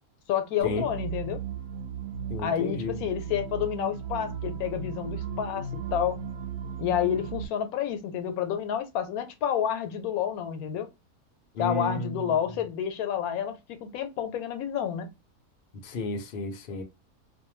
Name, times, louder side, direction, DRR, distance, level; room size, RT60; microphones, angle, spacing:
voice 1, 0.3-1.4 2.4-6.2 6.8-10.9 11.6-15.1, left 9 dB, 80° left, 1.0 m, -29 dB
sound 1, 0.6-7.5, right 7 dB, 75° right, 1.0 m, -36 dB
voice 2, 2.3-3.0 11.5-12.2 15.8-16.8, left 3 dB, 55° left, 0.6 m, -32 dB
2.5 x 2.1 x 3.0 m
omnidirectional pair, 1.5 m